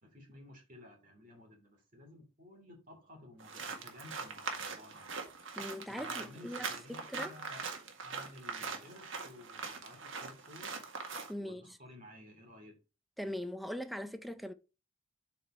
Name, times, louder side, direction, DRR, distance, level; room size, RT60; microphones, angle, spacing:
voice 1, 0.0-5.1 5.9-7.7 8.0-10.8 11.3-12.8, left 1 dB, 40° right, 2.6 m, -54 dB
sound 1, 3.4-11.3, right 4 dB, 65° right, 1.7 m, -42 dB
voice 2, 5.6-7.3 11.3-11.7 13.2-14.5, equal, ahead, 0.5 m, -41 dB
7.8 x 4.2 x 4.3 m
head